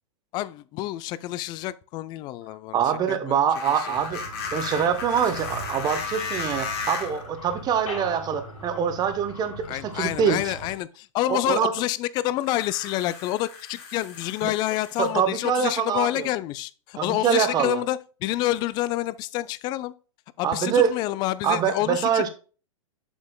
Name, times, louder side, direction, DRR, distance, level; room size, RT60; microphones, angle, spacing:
voice 1, 0.3-2.8 3.1-3.9 9.7-19.9 20.4-22.3, left 16 dB, 25° left, 0.3 m, -28 dB
voice 2, 2.7-4.2 4.5-10.5 11.3-11.7 14.4-14.5 15.0-16.3 17.0-17.8 20.4-20.9 21.4-22.3, right 7 dB, 25° right, 1.0 m, -24 dB
sound 1, 3.5-7.3 8.3-8.4 12.4-15.1, left 5 dB, 45° left, 2.2 m, -35 dB
sound 2, 3.9-10.7, equal, 80° left, 3.0 m, -40 dB
6.9 x 6.6 x 2.2 m
hypercardioid pair, 120°, 18 cm